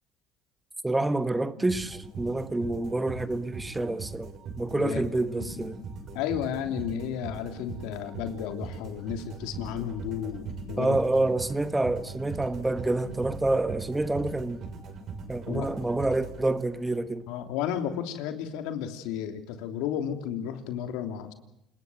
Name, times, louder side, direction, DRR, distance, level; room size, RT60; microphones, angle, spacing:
voice 1, 0.8-4.3 4.6-5.8 10.8-14.6 15.3-17.3, right 2 dB, 10° right, 1.3 m, -28 dB
sound 1, 1.7-16.9, right 5 dB, 55° right, 6.4 m, -40 dB
voice 2, 6.1-11.0 15.5-15.7 17.3-21.3, left 9 dB, 85° left, 3.1 m, -33 dB
28.5 x 19.5 x 7.8 m
cardioid pair, 105°, 0 cm